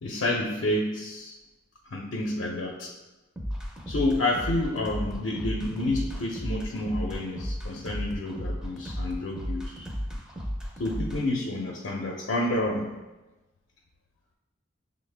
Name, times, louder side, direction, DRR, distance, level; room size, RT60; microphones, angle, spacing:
voice 1, 0.0-1.4 1.9-2.9 3.9-9.9 10.8-12.9, left 1 dB, 75° left, -1 dB, 0.5 m, -29 dB
sound 1, 3.4-11.2, equal, 5° right, 0.4 m, -34 dB
6.1 x 2.0 x 3.3 m, 1.1 s
head